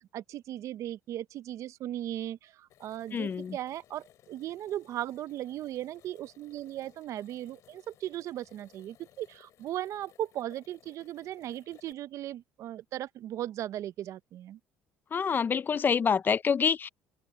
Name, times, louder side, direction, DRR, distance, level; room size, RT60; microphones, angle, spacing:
voice 1, 0.1-14.6, right 13 dB, 65° right, 0.7 m, -37 dB
sound 1, 2.7-11.9, left 12 dB, 65° left, 3.1 m, -61 dB
voice 2, 3.1-3.6 15.1-16.9, left 6 dB, 35° left, 0.5 m, -27 dB
open air
supercardioid pair, 90°, 6 cm